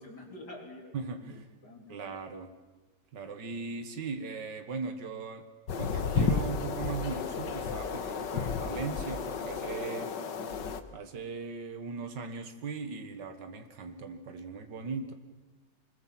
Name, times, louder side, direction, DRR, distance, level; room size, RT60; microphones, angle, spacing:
voice 1, 0.0-2.0 10.3-10.7, left 1 dB, 70° left, 2 dB, 4.5 m, -48 dB
voice 2, 0.9-1.5 1.9-2.5 3.1-5.5 5.8-10.1 10.9-15.1, right 5 dB, 80° right, 8 dB, 2.2 m, -38 dB
sound 1, 5.7-10.8, left 6 dB, 85° left, 1.9 m, -32 dB
25.5 x 21.0 x 7.6 m, 1.2 s
omnidirectional pair, 1.9 m